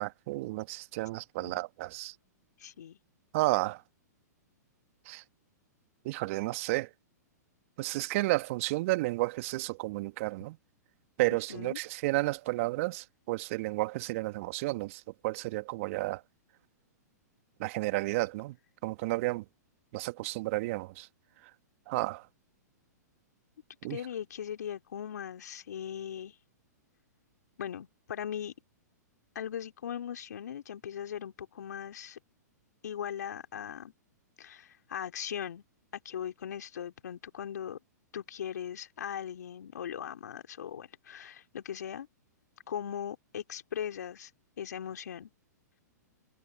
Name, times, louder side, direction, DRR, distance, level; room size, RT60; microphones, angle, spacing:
voice 1, 0.0-2.1 3.3-3.8 5.1-5.2 6.1-6.9 7.8-10.6 11.2-16.2 17.6-18.5 18.8-19.4 19.9-21.1 21.9-22.3 23.8-24.0, right 20 dB, 50° right, 1.7 m, -32 dB
voice 2, 2.6-3.0 11.3-11.8 23.9-26.4 27.6-28.5 29.4-32.2 32.8-33.9 34.4-35.6 36.1-37.8 38.1-42.1 42.7-44.3 44.6-45.3, left 9 dB, 70° left, 3.6 m, -39 dB
hypercardioid pair, 115°, 10 cm